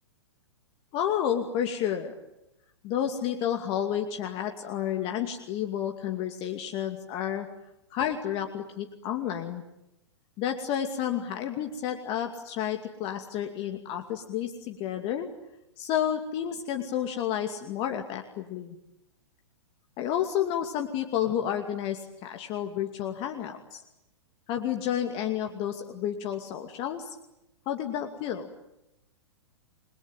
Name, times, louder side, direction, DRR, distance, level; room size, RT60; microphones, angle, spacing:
voice 1, 0.9-2.2 2.8-7.5 7.9-9.6 10.4-15.3 15.8-18.8 20.0-23.8 24.5-27.1 27.7-28.5, left 10 dB, 40° left, 4 dB, 2.5 m, -30 dB
29.5 x 22.0 x 8.9 m, 0.88 s
hypercardioid pair, 115°, 15 cm